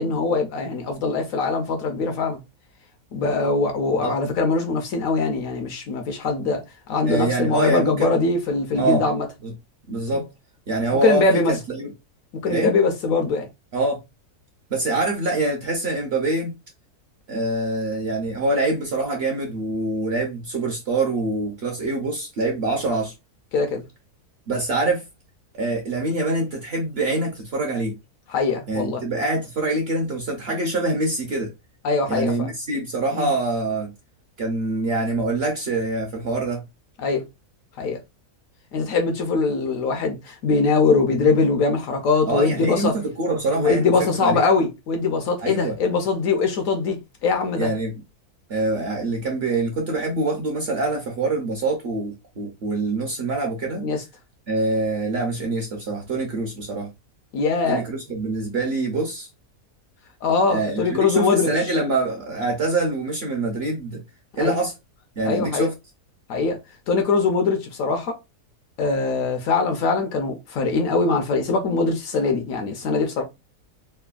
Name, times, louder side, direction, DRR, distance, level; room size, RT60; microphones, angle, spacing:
voice 1, 0.0-2.4 3.1-6.6 6.9-9.3 10.1-10.2 11.0-11.5 12.4-13.5 23.5-23.8 28.3-29.0 31.8-32.5 33.1-33.3 37.0-37.2 37.8-38.0 38.7-42.9 43.6-47.7 53.8-54.0 57.3-57.8 60.2-61.5 64.4-64.6 65.2-65.7 66.3-66.6 66.9-68.2 68.8-73.2, left 4 dB, 70° left, 0.9 m, -22 dB
voice 2, 7.1-8.1 8.7-9.0 9.4-9.5 9.9-10.3 10.7-11.9 12.5-12.8 13.7-14.0 14.7-16.5 17.3-23.1 24.5-25.0 25.5-28.0 28.7-31.5 32.1-33.9 34.4-36.6 42.2-44.4 45.4-45.7 47.6-47.9 48.5-53.9 54.5-56.9 57.7-59.3 60.5-64.0 64.4-64.7 65.2-65.7, right 2 dB, 55° right, 0.7 m, -25 dB
3.3 x 2.1 x 2.3 m
omnidirectional pair, 1.6 m